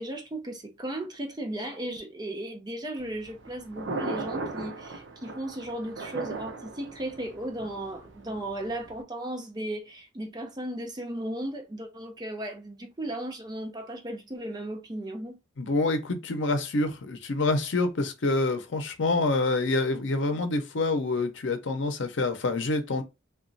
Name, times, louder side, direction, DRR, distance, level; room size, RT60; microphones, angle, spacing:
voice 1, 0.0-15.4, right 1 dB, 20° right, 0.5 m, -36 dB
Thunder, 3.0-9.0, right 3 dB, 70° right, 0.6 m, -38 dB
voice 2, 15.6-23.0, left 2 dB, 75° left, 0.6 m, -27 dB
2.9 x 2.3 x 2.6 m
head